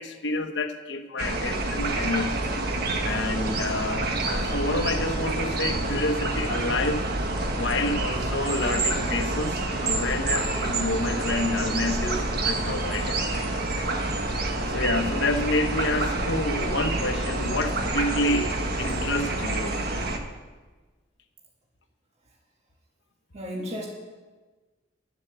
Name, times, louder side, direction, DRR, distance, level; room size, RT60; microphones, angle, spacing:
voice 1, 0.0-2.5 3.0-7.1 7.5-14.0 14.7-18.5 18.8-19.8, left 2 dB, 65° left, 6 dB, 1.2 m, -29 dB
sound 1, 1.2-20.2, right 2 dB, 55° right, 1.4 m, -28 dB
voice 2, 23.3-23.9, equal, 35° right, -1 dB, 1.5 m, -34 dB
11.5 x 10.5 x 6.8 m, 1.3 s
head